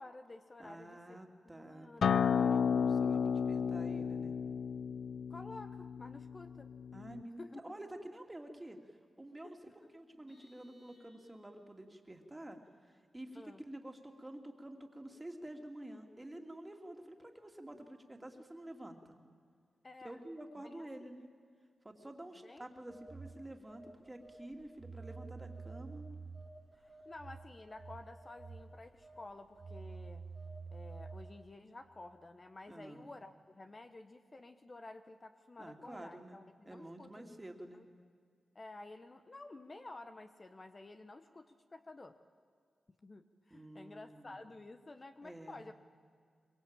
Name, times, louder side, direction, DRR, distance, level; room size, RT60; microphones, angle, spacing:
voice 1, 0.0-2.2 5.3-6.7 7.4-7.7 9.4-9.6 13.3-13.6 19.8-20.2 20.6-21.2 22.4-22.6 27.0-30.2 30.7-37.3 37.7-37.9 38.5-42.2 43.0-45.7, left 2 dB, 35° left, 8 dB, 1.1 m, -52 dB
voice 2, 0.6-4.4 6.9-9.6 9.9-12.6 12.9-19.2 20.0-21.3 21.8-26.0 32.7-33.1 35.6-36.4 36.7-37.8 43.5-44.4 45.2-45.6, right 1 dB, 15° right, 4 dB, 2.6 m, -49 dB
Acoustic guitar, 2.0-7.2, left 7 dB, 80° left, 0.6 m, -32 dB
Vehicle horn car horn honking, 10.3-11.7, left 1 dB, 50° left, 6.8 m, -68 dB
Telephone, 22.9-31.5, right 4 dB, 40° right, 2.6 m, -49 dB
23.5 x 22.5 x 9.0 m, 2.1 s
cardioid pair, 80°, 0 cm